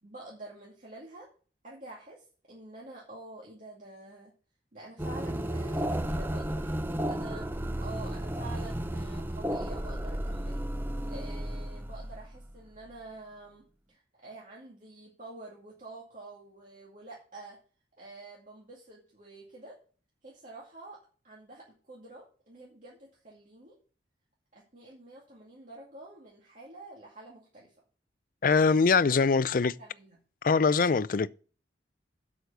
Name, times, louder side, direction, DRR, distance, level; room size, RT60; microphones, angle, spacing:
voice 1, 0.0-1.3 1.6-4.3 4.7-10.6 11.1-17.6 18.0-19.8 20.2-23.8 24.5-27.7 29.1-30.2, right 2 dB, 45° right, 2.4 m, -48 dB
sound 1, 5.0-12.9, right 1 dB, 10° right, 0.6 m, -33 dB
voice 2, 28.4-29.7 30.4-31.3, left 5 dB, 50° left, 0.4 m, -23 dB
8.1 x 6.3 x 6.8 m
head